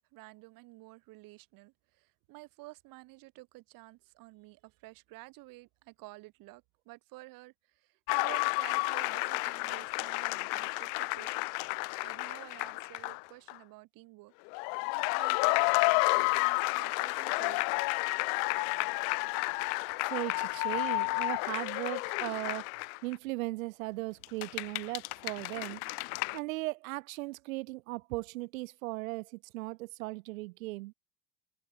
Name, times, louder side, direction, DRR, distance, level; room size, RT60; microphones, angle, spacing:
voice 1, 0.1-11.3 12.0-14.3 14.8-17.7, right 22 dB, 55° right, 4.4 m, -51 dB
sound 1, 8.1-13.2 13.5-13.6 14.5-23.1 24.2-26.4, left 40 dB or more, 60° left, 2.0 m, -31 dB
voice 2, 20.1-22.7 23.0-25.8 26.3-30.9, right 21 dB, 75° right, 1.6 m, -37 dB
supercardioid pair, 125°, 41 cm